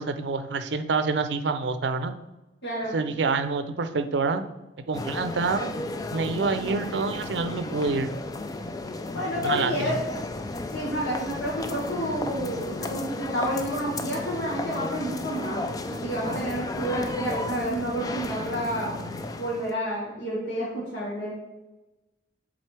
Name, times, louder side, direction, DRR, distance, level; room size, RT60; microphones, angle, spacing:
voice 1, 0.0-2.1 2.9-4.4 4.9-5.7 6.1-8.1 9.4-10.0, right 4 dB, 70° right, 9 dB, 0.5 m, -27 dB
voice 2, 2.6-2.9 9.1-10.0 10.7-15.6 15.9-19.0 19.4-21.3, equal, 75° left, -7 dB, 1.7 m, -29 dB
sound 1, 4.9-19.7, left 2 dB, 20° left, 0.3 m, -34 dB
7.5 x 3.9 x 3.3 m, 1.0 s
head